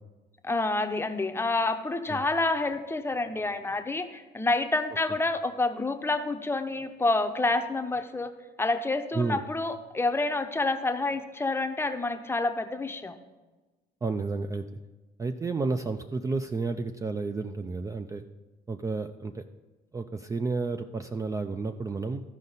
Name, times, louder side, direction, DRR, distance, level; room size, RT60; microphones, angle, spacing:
voice 1, 0.4-8.3 8.6-13.1, left 2 dB, 15° left, 7 dB, 0.7 m, -28 dB
voice 2, 14.0-14.6 15.2-18.2 18.7-19.5 19.9-22.2, right 3 dB, 20° right, 7 dB, 0.4 m, -31 dB
14.0 x 5.3 x 4.0 m, 1.2 s
cardioid pair, 110°, 17 cm